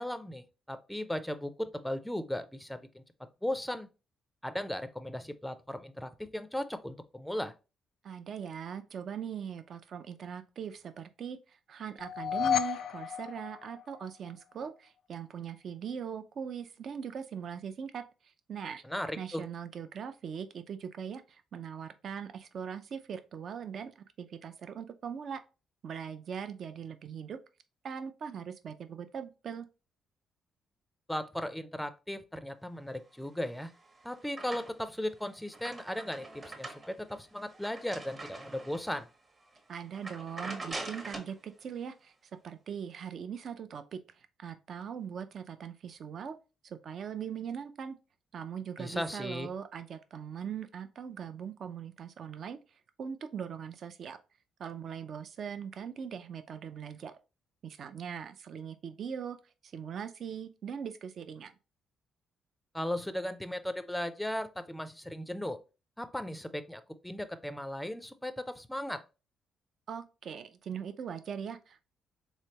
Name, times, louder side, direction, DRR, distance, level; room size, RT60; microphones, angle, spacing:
voice 1, 0.0-3.0 3.4-3.9 4.4-7.5 18.8-19.4 31.1-33.7 34.0-39.1 48.8-49.5 62.7-65.6 66.0-69.0, left 1 dB, 5° left, 0.4 m, -37 dB
voice 2, 8.0-18.0 18.5-18.8 19.2-23.9 24.2-25.4 25.8-27.4 27.8-29.7 39.7-42.1 42.4-46.3 46.6-48.0 48.3-52.6 53.0-54.2 54.6-57.1 57.6-59.4 59.6-61.5 69.9-71.8, right 7 dB, 60° right, 0.5 m, -40 dB
sound 1, 12.0-14.3, left 9 dB, 65° left, 0.3 m, -32 dB
sound 2, 33.4-35.0 35.4-39.0 39.4-39.6 39.9-41.4, right 2 dB, 30° right, 0.8 m, -44 dB
3.6 x 3.2 x 2.8 m
cardioid pair, 90°, 0 cm